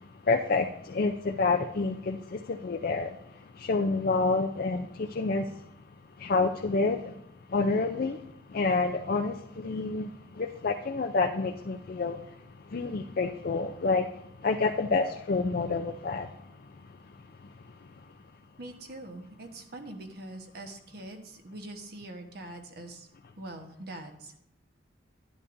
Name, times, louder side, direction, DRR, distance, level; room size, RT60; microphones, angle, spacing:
voice 1, 0.2-3.2 3.6-5.5 6.2-7.1 7.5-8.2 8.5-12.2 12.7-14.1 14.4-16.3, left 3 dB, 50° left, 3 dB, 0.5 m, -28 dB
voice 2, 18.6-23.1 23.4-24.4, right 1 dB, 55° right, 4 dB, 1.2 m, -43 dB
11.0 x 11.0 x 2.6 m, 0.77 s
head